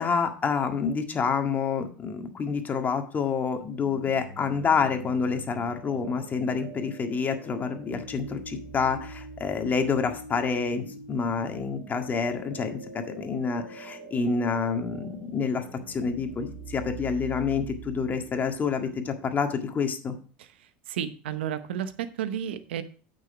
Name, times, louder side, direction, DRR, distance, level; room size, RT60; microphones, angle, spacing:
voice 1, 0.0-20.1, left 5 dB, 30° left, 5 dB, 1.8 m, -28 dB
sound 1, 3.7-19.8, right 3 dB, 65° right, 4.0 m, -44 dB
voice 2, 20.4-22.8, right 9 dB, 85° right, 12 dB, 0.9 m, -33 dB
8.9 x 6.3 x 4.9 m, 0.39 s
hypercardioid pair, 90°, 6 cm